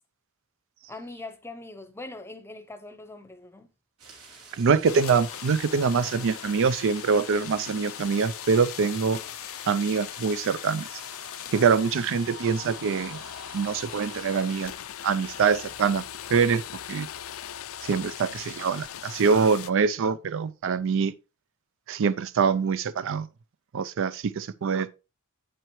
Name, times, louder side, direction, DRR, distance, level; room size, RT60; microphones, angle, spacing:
voice 1, 0.9-3.7, left 2 dB, 10° left, 0.8 m, -42 dB
sound 1, 4.0-14.7, right 4 dB, 80° right, 2.9 m, -49 dB
voice 2, 4.6-9.2 9.7-10.9 11.5-13.2 13.5-14.7 15.0-16.0 16.3-16.6 16.9-17.1 17.9-21.1 21.9-23.3 23.7-24.9, right 5 dB, 60° right, 0.4 m, -24 dB
sound 2, 4.8-19.7, left 10 dB, 65° left, 0.5 m, -39 dB
8.0 x 7.7 x 3.1 m
head